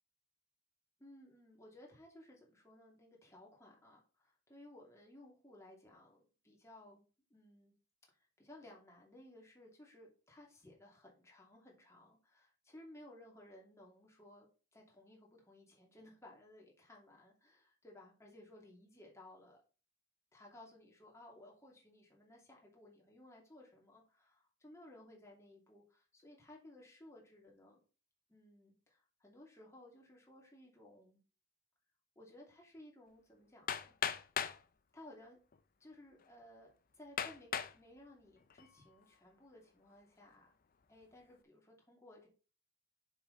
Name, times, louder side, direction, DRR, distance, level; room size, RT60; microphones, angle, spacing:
voice 1, 1.0-7.0 7.3-7.7 8.1-14.5 14.7-19.6 20.3-27.8 28.3-31.2 32.2-33.9 34.9-35.4 35.8-40.5 40.9-42.3, left 1 dB, 15° left, -1 dB, 2.7 m, -59 dB
Hammer, 33.7-34.6 35.5-35.6 36.2-36.3 37.2-37.8 38.4-38.8, left 8 dB, 45° left, 0.6 m, -38 dB
6.8 x 6.1 x 4.1 m, 0.35 s
head